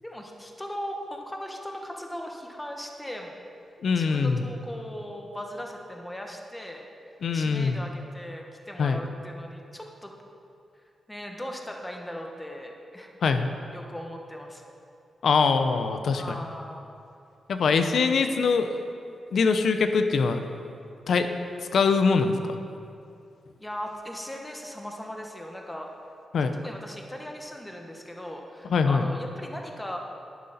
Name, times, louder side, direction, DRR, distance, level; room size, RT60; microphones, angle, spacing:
voice 1, 0.0-3.3 3.9-6.8 7.3-10.1 11.1-13.1 13.7-14.6 16.1-16.9 23.6-25.9 26.6-30.0, equal, 10° left, 1 dB, 1.3 m, -38 dB
voice 2, 3.8-4.4 7.2-7.8 8.8-9.0 13.2-13.5 15.2-16.4 17.5-18.8 19.3-20.4 21.1-21.3 21.7-22.6 26.3-26.5 28.7-29.0, left 5 dB, 70° left, 8 dB, 0.7 m, -23 dB
11.0 x 10.5 x 4.2 m, 2.6 s
cardioid pair, 100°, 0 cm